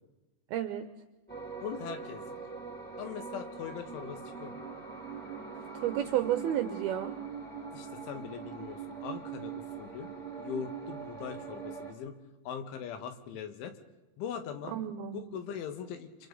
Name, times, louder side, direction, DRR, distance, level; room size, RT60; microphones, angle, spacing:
voice 1, 0.5-0.9 5.7-7.1 14.8-15.4, right 11 dB, 80° right, 8 dB, 2.3 m, -31 dB
sound 1, 1.3-11.9, right 6 dB, ahead, 4.1 m, -42 dB
voice 2, 1.6-2.4 3.0-4.6 7.7-10.1 10.4-12.2 12.5-13.7 14.2-14.7 15.1-16.3, left 8 dB, 85° left, 7 dB, 4.0 m, -41 dB
29.5 x 25.5 x 4.0 m, 1.1 s
omnidirectional pair, 5.4 m